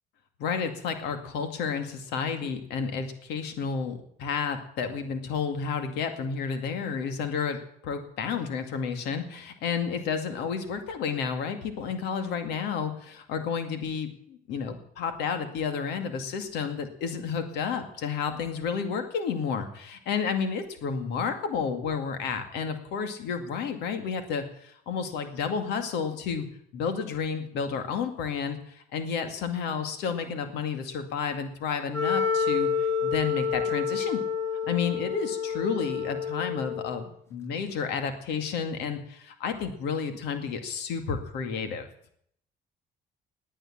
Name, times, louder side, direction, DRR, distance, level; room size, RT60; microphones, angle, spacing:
voice 1, 0.4-26.5 26.7-34.2 34.7-41.9, left 6 dB, 85° left, 7 dB, 2.3 m, -31 dB
Wind instrument woodwind instrument, 31.9-37.0, left 6 dB, 15° left, 5.4 m, -28 dB
19.0 x 9.1 x 7.3 m, 0.67 s
cardioid pair, 110°, 17 cm